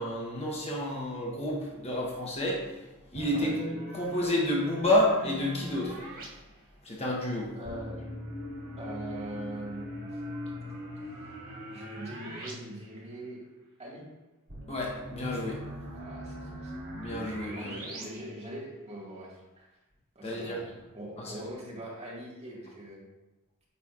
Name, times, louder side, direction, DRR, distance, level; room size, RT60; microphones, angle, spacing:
voice 1, 0.0-2.8 3.1-6.0 6.8-7.5 14.7-15.6 16.9-17.9 20.2-20.6 21.2-21.4, left 1 dB, 30° left, -2 dB, 1.0 m, -30 dB
sound 1, 3.1-6.3 7.6-12.5 12.8-12.9 14.5-18.0, equal, 85° right, 2.2 m, -40 dB
voice 2, 7.5-8.0 8.8-10.1 11.7-13.4 13.8-14.0 15.9-16.7 17.5-19.7 20.2-20.6 20.9-23.0, right 1 dB, 30° right, -5 dB, 1.8 m, -42 dB
8.5 x 5.0 x 2.4 m, 1.1 s
head